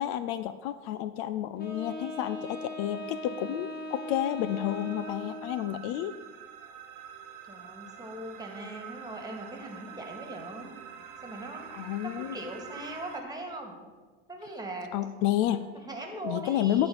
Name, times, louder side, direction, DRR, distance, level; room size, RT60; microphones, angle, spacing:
voice 1, 0.0-6.2 11.7-12.4 14.9-15.7 16.2-16.9, left 12 dB, 60° left, 13 dB, 0.5 m, -30 dB
Wind instrument woodwind instrument, 1.6-5.7, left 1 dB, 25° left, 2.2 m, -39 dB
sound 1, 2.6-13.2, right 8 dB, 50° right, 1.2 m, -47 dB
voice 2, 7.5-10.7 11.2-11.7 12.0-13.8 14.3-14.9 15.8-16.9, right 1 dB, 10° right, 2 dB, 2.1 m, -40 dB
11.0 x 4.4 x 6.9 m, 1.4 s
hypercardioid pair, 90°, 38 cm